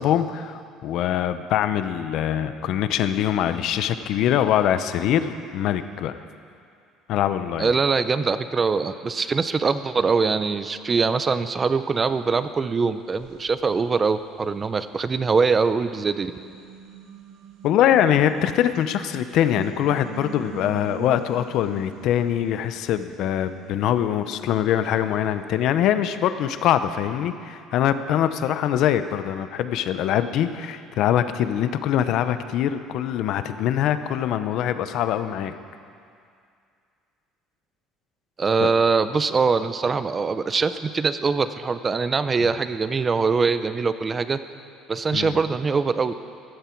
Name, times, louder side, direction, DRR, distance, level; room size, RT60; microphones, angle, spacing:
voice 1, 0.0-6.1 7.1-7.7 17.6-35.5 38.6-38.7 42.4-42.5 45.1-45.4, left 10 dB, 50° left, 11 dB, 0.6 m, -23 dB
voice 2, 7.6-16.3 38.4-44.4 44.9-46.1, right 4 dB, 20° right, 12 dB, 0.4 m, -23 dB
sound 1, 12.4-12.5 13.1-15.4 15.9-27.2, right 7 dB, 60° right, 1.0 m, -44 dB
15.5 x 13.0 x 4.5 m, 2.3 s
cardioid pair, 170°, 0 cm